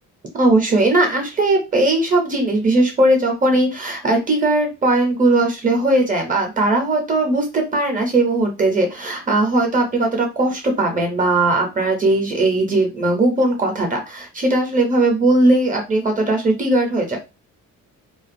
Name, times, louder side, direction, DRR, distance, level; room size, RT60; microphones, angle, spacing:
voice 1, 0.3-17.2, right 2 dB, 25° right, 3 dB, 0.5 m, -18 dB
2.3 x 2.2 x 2.5 m, 0.27 s
cardioid pair, 180°, 32 cm